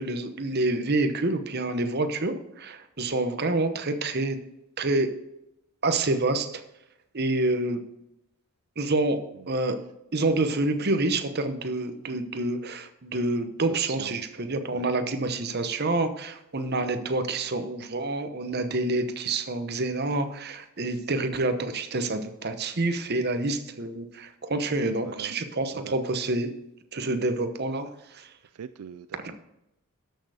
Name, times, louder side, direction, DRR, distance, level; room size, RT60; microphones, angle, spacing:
voice 1, 0.0-4.4 4.8-5.1 5.8-6.6 7.1-7.8 8.8-9.8 10.1-26.5 26.9-28.3 29.2-29.3, right 2 dB, 45° right, 9 dB, 1.0 m, -27 dB
voice 2, 13.9-14.2 14.7-14.9 25.0-25.3 25.7-26.0 28.6-29.3, right 7 dB, 80° right, 12 dB, 0.4 m, -41 dB
13.0 x 6.5 x 4.9 m, 0.88 s
head